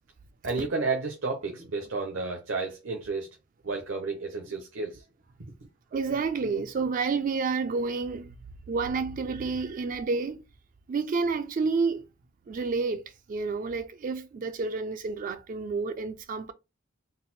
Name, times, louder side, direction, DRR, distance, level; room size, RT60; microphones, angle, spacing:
voice 1, 0.4-3.3 3.6-5.0 5.4-5.5, right 3 dB, 75° right, 0.8 m, -31 dB
voice 2, 5.9-8.3 8.7-10.4 10.9-12.1 12.5-13.0 13.3-16.5, right 4 dB, 45° right, 0.3 m, -29 dB
4.0 x 2.0 x 4.1 m
head